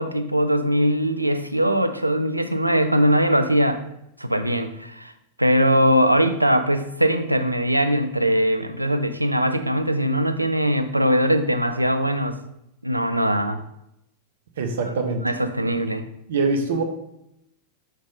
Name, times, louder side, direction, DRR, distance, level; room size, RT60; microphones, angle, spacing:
voice 1, 0.0-3.8 4.2-5.1 5.4-12.4 12.8-13.6 14.9-15.0 15.2-16.1, equal, 85° right, 9 dB, 0.5 m, -21 dB
voice 2, 14.6-15.2 16.3-16.8, right 3 dB, 60° right, 5 dB, 0.9 m, -23 dB
5.2 x 5.2 x 3.7 m, 0.81 s
figure-of-eight pair, 90°, 0 cm